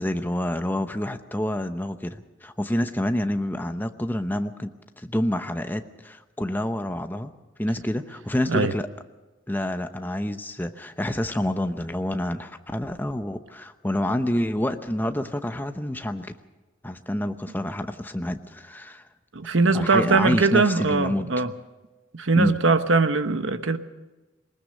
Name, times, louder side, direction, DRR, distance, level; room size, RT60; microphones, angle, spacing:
voice 1, 0.0-4.7 5.0-7.3 7.6-8.9 9.5-16.4 16.8-19.0 19.7-21.3 22.3-22.6, left 1 dB, 10° left, 0.9 m, -28 dB
voice 2, 19.3-21.5 22.1-23.8, right 3 dB, 75° right, 1.1 m, -21 dB
20.5 x 19.5 x 6.6 m
head